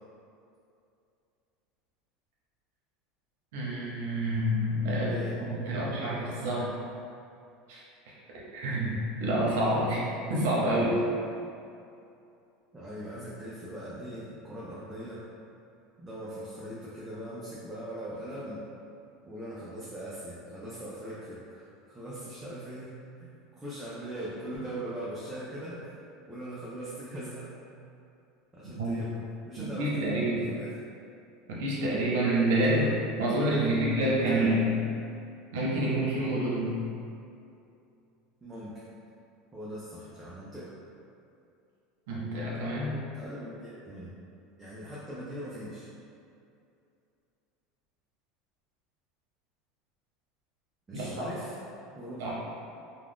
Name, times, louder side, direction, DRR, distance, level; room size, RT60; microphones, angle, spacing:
voice 1, 3.5-5.2 5.6-6.7 7.7-7.8 8.5-10.0 10.3-11.0 28.8-29.0 29.6-30.4 31.5-34.8 35.5-36.8 42.1-43.0 50.9-51.3 52.2-52.3, right 1 dB, 75° right, -5 dB, 0.8 m, -28 dB
voice 2, 5.1-5.6 12.7-15.3 16.0-18.6 19.2-22.9 23.2-23.3 23.6-26.0 26.3-27.5 28.5-30.1 30.5-30.7 32.6-32.8 33.2-34.5 38.4-38.8 39.5-40.7 43.1-44.1 44.6-45.9 50.9-51.5 51.9-52.3, right 1 dB, 10° right, -9 dB, 0.4 m, -41 dB
2.4 x 2.3 x 3.4 m, 2.6 s
cardioid pair, 170°, 0 cm